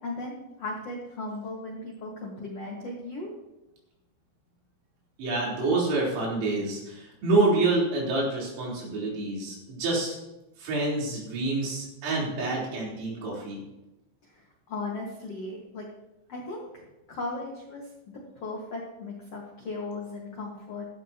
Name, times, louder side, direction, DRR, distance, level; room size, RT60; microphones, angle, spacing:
voice 1, 0.0-3.3 14.2-15.9 16.3-20.8, left 2 dB, 80° left, -2 dB, 1.4 m, -37 dB
voice 2, 5.2-10.1 10.6-13.6, right 2 dB, 85° right, -4 dB, 6.5 m, -27 dB
15.5 x 13.0 x 2.9 m, 0.95 s
omnidirectional pair, 5.8 m